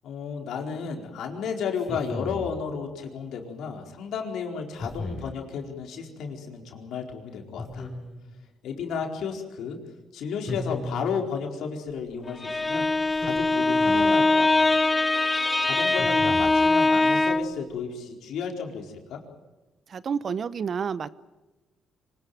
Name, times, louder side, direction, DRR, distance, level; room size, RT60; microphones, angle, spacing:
voice 1, 0.0-7.9 8.6-9.8 10.1-12.9 13.2-14.7 15.6-19.2, left 6 dB, 80° left, 3 dB, 4.4 m, -33 dB
sound 1, 1.8-2.6 4.8-5.4 7.6-8.4 10.5-11.3 13.1-14.1 16.0-16.7, left 2 dB, 35° left, 7.5 m, -36 dB
Bowed string instrument, 12.3-17.6, left 2 dB, 20° left, 1.2 m, -22 dB
voice 2, 19.9-21.1, right 6 dB, 50° right, 16 dB, 1.0 m, -29 dB
25.5 x 19.0 x 9.3 m, 1.1 s
cardioid pair, 90°, 0 cm